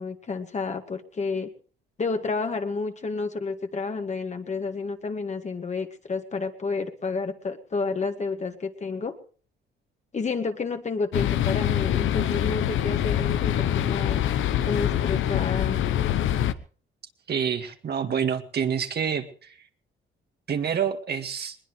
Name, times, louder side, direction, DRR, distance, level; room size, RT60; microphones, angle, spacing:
voice 1, 0.0-1.5 2.0-9.2 10.1-14.2 14.7-15.8, left 4 dB, 35° left, 6 dB, 2.0 m, -30 dB
sound 1, 11.1-16.5, left 11 dB, 75° left, 0.9 m, -24 dB
voice 2, 17.3-19.3 20.5-21.6, right 7 dB, 55° right, 6 dB, 2.0 m, -27 dB
21.0 x 20.0 x 3.3 m, 0.42 s
cardioid pair, 90°, 20 cm